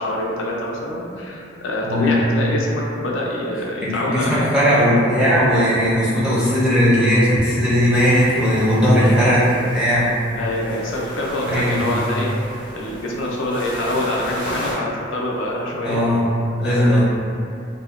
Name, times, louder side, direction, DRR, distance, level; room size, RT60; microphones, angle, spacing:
voice 1, 0.0-5.0 6.4-6.6 8.9-9.4 10.4-12.3 12.7-16.1 16.6-17.0, left 1 dB, 70° left, -2 dB, 0.3 m, -25 dB
voice 2, 1.8-2.2 3.8-9.4 9.7-10.1 11.5-12.0 15.8-16.3 16.6-17.0, equal, 5° right, -11 dB, 0.5 m, -17 dB
sound 1, 7.9-14.7, equal, 20° right, 0.8 m, -35 dB
2.7 x 2.1 x 2.3 m, 2.4 s
head